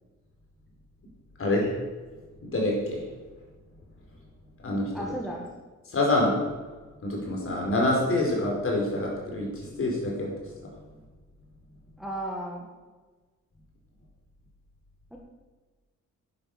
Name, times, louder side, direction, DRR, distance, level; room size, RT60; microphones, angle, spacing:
voice 1, 1.4-1.8 2.4-3.1 4.6-5.0 5.9-6.4 7.0-10.3, left 1 dB, 45° left, -1 dB, 4.6 m, -26 dB
voice 2, 4.9-5.5 12.0-12.7 15.1-15.2, right 1 dB, ahead, -2 dB, 1.7 m, -34 dB
11.0 x 9.7 x 6.7 m, 1.3 s
wide cardioid pair, 150°, 30 cm